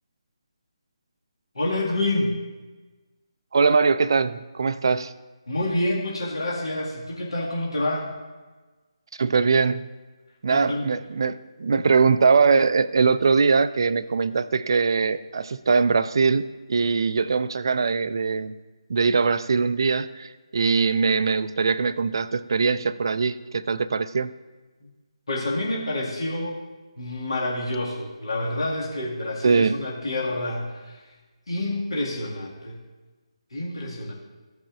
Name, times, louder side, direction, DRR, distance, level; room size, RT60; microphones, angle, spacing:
voice 1, 1.5-2.4 5.5-8.1 10.5-10.8 25.3-26.6 27.0-31.1 31.5-32.8 33.5-34.1, left 1 dB, 65° left, -4 dB, 2.0 m, -28 dB
voice 2, 3.5-5.1 9.2-9.9 10.4-18.5 18.9-24.3 29.4-29.8, right 5 dB, 50° right, 14 dB, 0.4 m, -22 dB
16.0 x 6.2 x 2.5 m, 1.3 s
figure-of-eight pair, 145°, 3 cm